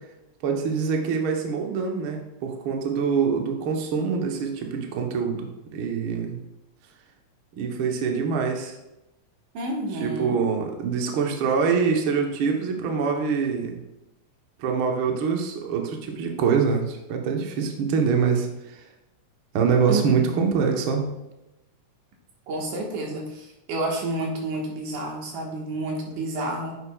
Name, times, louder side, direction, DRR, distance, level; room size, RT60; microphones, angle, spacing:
voice 1, 0.4-6.4 7.5-8.7 10.0-13.8 14.6-18.8 19.5-21.1, right 6 dB, 65° right, 2 dB, 1.3 m, -25 dB
voice 2, 9.5-10.4 19.9-20.7 22.5-26.8, right 2 dB, 90° right, 0 dB, 2.9 m, -30 dB
9.7 x 6.7 x 2.3 m, 0.96 s
omnidirectional pair, 3.5 m